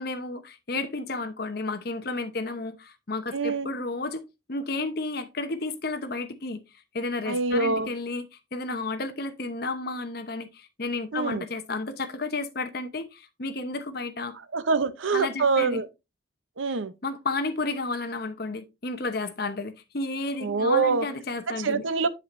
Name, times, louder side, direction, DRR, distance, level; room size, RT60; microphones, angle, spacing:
voice 1, 0.0-4.2 4.5-6.6 6.9-14.4 15.1-15.8 17.0-21.9, left 3 dB, 55° left, 0.9 m, -32 dB
voice 2, 3.3-3.7 7.3-7.9 11.1-11.4 14.5-15.9 16.6-16.9 20.4-21.1 21.6-22.1, right 4 dB, 90° right, 0.7 m, -25 dB
7.6 x 7.5 x 2.6 m
head